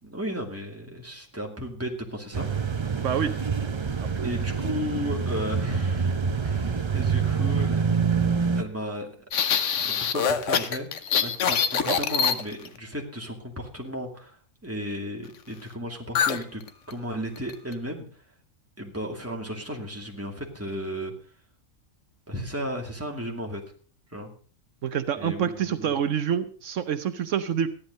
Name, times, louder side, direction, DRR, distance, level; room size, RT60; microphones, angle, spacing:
voice 1, 0.0-3.3 4.2-7.8 8.6-9.2 9.5-10.9 11.2-16.6 16.9-18.0 18.8-21.1 22.3-23.6 24.1-24.3 25.2-25.9, equal, 10° right, 1 dB, 2.4 m, -34 dB
sound 1, 2.3-8.6, right 5 dB, 30° right, 0.6 m, -26 dB
voice 2, 3.0-3.3 4.0-4.3 11.8-12.0 24.8-27.7, right 8 dB, 75° right, 10 dB, 1.1 m, -27 dB
sound 2, 9.3-12.8 16.2-16.4 16.7-16.9 17.4-17.7, left 7 dB, 70° left, 1.3 m, -24 dB
14.0 x 10.5 x 5.2 m, 0.41 s
omnidirectional pair, 1.3 m